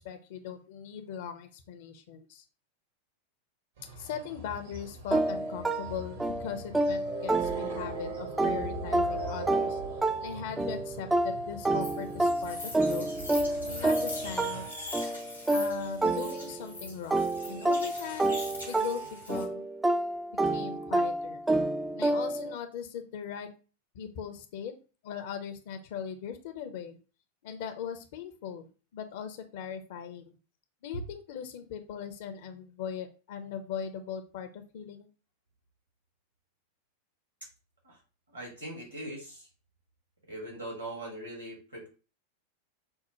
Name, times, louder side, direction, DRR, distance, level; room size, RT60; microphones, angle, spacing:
voice 1, 0.0-2.4 3.9-9.8 10.2-13.1 13.7-14.7 15.5-18.4 18.7-19.0 19.3-19.6 20.4-21.4 21.9-23.5 23.9-24.7 25.0-27.0 27.4-28.6 28.9-30.4 30.8-35.1, left 8 dB, 50° left, 9 dB, 0.6 m, -39 dB
sound 1, 3.8-14.7, right 2 dB, 65° right, 1.0 m, -41 dB
sound 2, 5.1-8.0 8.4-16.7 17.1-22.5, right 2 dB, 10° right, 0.3 m, -29 dB
sound 3, 11.8-19.4, left 2 dB, 85° left, 1.0 m, -42 dB
voice 2, 38.3-39.5 40.3-41.9, right 1 dB, 80° right, -2 dB, 2.0 m, -41 dB
5.3 x 2.1 x 3.0 m, 0.34 s
figure-of-eight pair, 90°, 0 cm